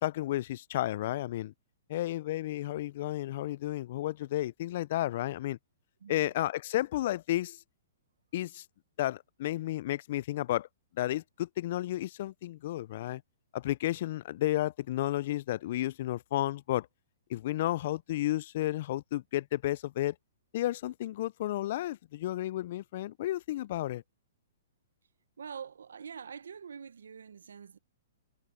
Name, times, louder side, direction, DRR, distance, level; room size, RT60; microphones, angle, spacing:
voice 1, 0.0-1.5 1.9-5.6 6.1-7.6 8.3-8.6 9.0-10.7 11.0-13.2 13.5-16.9 17.3-20.1 20.5-24.0, left 14 dB, 55° left, 0.3 m, -32 dB
voice 2, 6.0-6.3 25.4-27.8, right 7 dB, 85° right, 0.8 m, -45 dB
hypercardioid pair, 140°, 0 cm